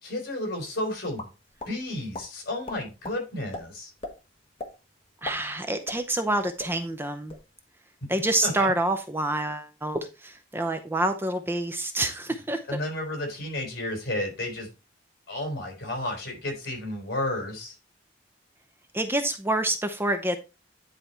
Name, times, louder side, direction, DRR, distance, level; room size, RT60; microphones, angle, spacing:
voice 1, 0.0-1.2 1.7-3.9 8.4-8.7 12.7-14.7 15.3-17.8, left 1 dB, 55° left, 3 dB, 4.1 m, -32 dB
sound 1, 1.2-1.7 2.1-2.3 2.7-3.2 3.5-3.6 4.0-4.1 4.6-4.7 5.1-6.3 6.6-6.7 7.1-7.4, left 2 dB, 30° left, 1.4 m, -37 dB
voice 2, 5.2-7.3 8.1-12.8 18.9-20.4, right 1 dB, 10° right, 7 dB, 0.6 m, -27 dB
10.0 x 4.2 x 4.3 m, 0.28 s
head